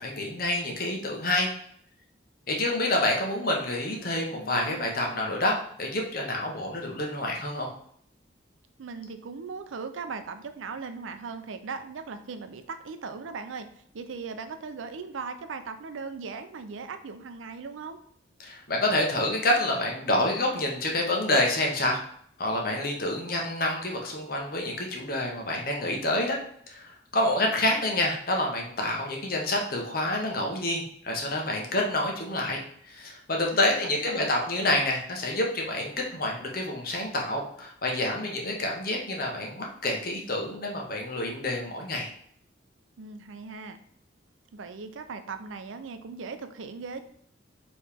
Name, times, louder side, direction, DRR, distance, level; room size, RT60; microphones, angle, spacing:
voice 1, 0.0-1.5 2.5-7.7 18.4-22.0 22.4-26.4 26.7-32.6 32.9-42.1, left 1 dB, 45° left, 0 dB, 0.9 m, -28 dB
voice 2, 4.3-5.3 8.8-13.7 13.9-18.0 33.5-34.3 43.0-43.8 44.5-47.0, right 4 dB, 80° right, 9 dB, 0.5 m, -39 dB
4.7 x 3.1 x 3.5 m, 0.64 s
head